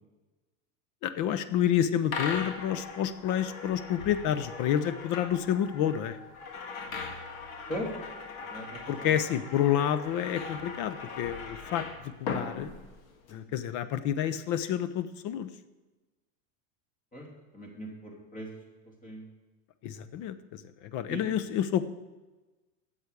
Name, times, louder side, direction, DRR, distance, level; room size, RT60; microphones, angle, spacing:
voice 1, 1.0-6.2 8.9-12.7 13.3-15.5 19.8-21.9, left 10 dB, 45° left, 13 dB, 0.7 m, -29 dB
sound 1, 2.1-13.3, left 4 dB, 85° left, 1.7 m, -40 dB
voice 2, 8.5-9.1 13.3-13.6 17.1-17.3 17.5-18.5 19.0-19.3 21.1-21.4, equal, 20° left, -1 dB, 2.9 m, -39 dB
8.0 x 7.5 x 8.2 m, 1.2 s
supercardioid pair, 130°, 40 cm